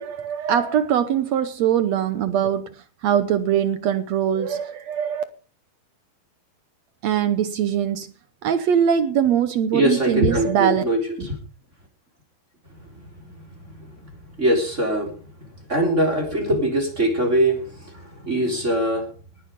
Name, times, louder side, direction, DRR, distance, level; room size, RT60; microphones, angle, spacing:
voice 1, 0.0-2.7 3.0-5.2 7.0-8.1 8.4-10.8, right 9 dB, 75° right, 1.6 m, -22 dB
voice 2, 9.7-11.4 12.7-14.0 14.4-19.1, right 1 dB, 20° right, 3.7 m, -23 dB
19.5 x 9.3 x 5.3 m
omnidirectional pair, 4.2 m